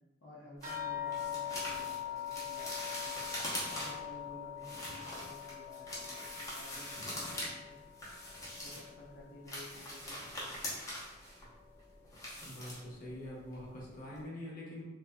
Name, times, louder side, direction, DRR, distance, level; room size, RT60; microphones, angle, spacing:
voice 1, 0.2-3.2 3.7-7.9 8.6-10.6, left 1 dB, 85° left, -4 dB, 0.6 m, -54 dB
sound 1, 0.6-4.1 4.6-7.5 7.8-8.9 9.3-13.2 13.5-13.8 14.1-14.2, left 1 dB, 15° left, 0.8 m, -42 dB
sound 2, 0.6-9.5 9.8-10.6 11.4-11.5 11.9-12.1, left 10 dB, 45° right, 0.8 m, -43 dB
voice 2, 12.4-14.8, left 1 dB, 50° left, -4 dB, 0.8 m, -44 dB
3.1 x 2.6 x 2.3 m, 1.1 s
head